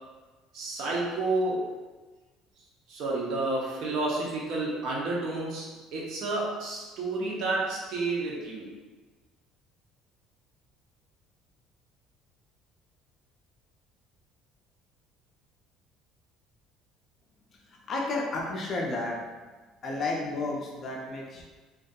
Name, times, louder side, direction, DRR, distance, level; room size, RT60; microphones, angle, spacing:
voice 1, 0.5-1.7 2.9-8.7, right 2 dB, 60° right, -3 dB, 0.6 m, -30 dB
voice 2, 17.9-19.2 19.8-21.4, left 2 dB, 35° left, -2 dB, 0.4 m, -31 dB
2.6 x 2.3 x 2.2 m, 1.3 s
cardioid pair, 145°, 0 cm